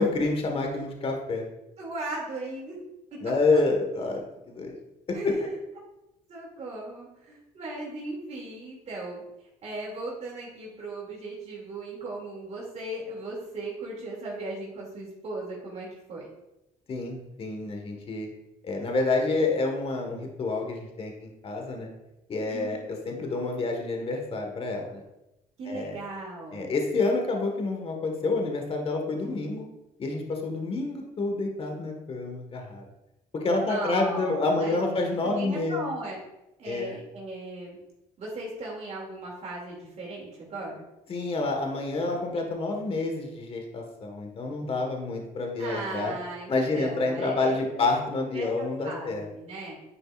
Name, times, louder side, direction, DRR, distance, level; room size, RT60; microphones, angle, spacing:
voice 1, 0.0-1.4 3.2-4.2 4.5-4.7 5.1-5.5 16.9-18.3 18.6-21.9 22.3-25.0 25.7-26.0 26.5-29.6 30.0-32.8 33.3-35.8 36.6-37.0 41.1-46.1 46.5-49.2, left 3 dB, 40° left, 2 dB, 1.6 m, -28 dB
voice 2, 1.8-2.8 3.5-3.6 5.1-5.6 6.3-9.2 9.6-16.3 22.5-22.8 25.6-26.7 33.7-35.0 35.2-36.2 36.6-37.8 38.2-40.8 45.6-47.9 48.3-49.7, right 2 dB, 50° right, -3 dB, 2.6 m, -37 dB
10.0 x 5.1 x 2.5 m, 0.91 s
supercardioid pair, 80°, 14 cm